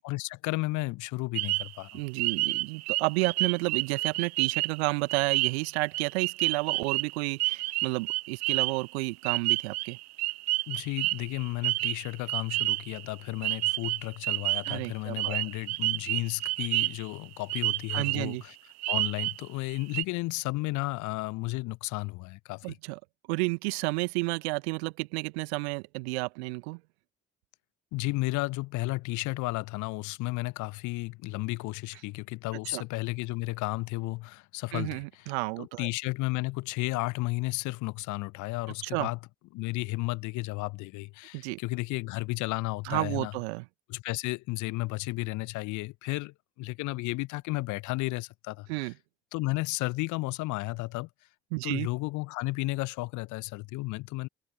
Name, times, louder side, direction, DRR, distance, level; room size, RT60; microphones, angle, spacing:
voice 1, 0.0-2.0 10.7-18.5 18.9-22.8 27.9-35.3 35.6-39.2 39.5-43.3 43.9-48.9 49.3-51.1 51.6-54.3, left 22 dB, 60° left, 0.9 m, -33 dB
sound 1, 1.4-13.1 13.4-14.8 15.2-17.2 17.5-18.3 18.8-19.4 19.7-20.0, right 21 dB, 50° right, 0.5 m, -30 dB
voice 2, 1.9-10.0 14.7-15.4 17.9-18.4 22.6-23.0 23.3-26.8 32.6-32.8 34.7-35.9 38.8-39.1 41.3-41.6 42.8-43.6 48.7-48.9 51.5-51.9, right 28 dB, 70° right, 1.3 m, -31 dB
figure-of-eight pair, 45°, 34 cm